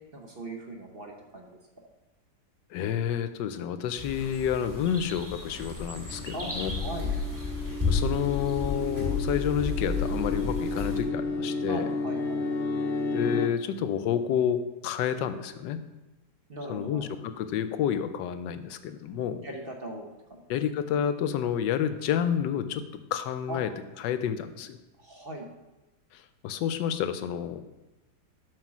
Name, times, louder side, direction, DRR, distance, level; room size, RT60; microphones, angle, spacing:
voice 1, 0.1-1.6 6.3-6.5 6.8-7.1 11.7-12.4 16.5-17.1 19.4-20.4 23.5-23.6 25.0-25.5, right 1 dB, 40° right, 1 dB, 0.9 m, -39 dB
voice 2, 2.7-6.7 7.9-11.8 13.1-15.8 16.7-19.4 20.5-22.8 23.1-23.7 24.0-24.8 26.1-27.6, left 9 dB, 90° left, 11 dB, 1.3 m, -29 dB
sound 1, 4.0-11.0, left 3 dB, 10° right, 1.7 m, -32 dB
sound 2, 6.1-13.5, left 3 dB, 65° left, 0.6 m, -32 dB
7.6 x 5.5 x 6.1 m, 1.1 s
omnidirectional pair, 1.9 m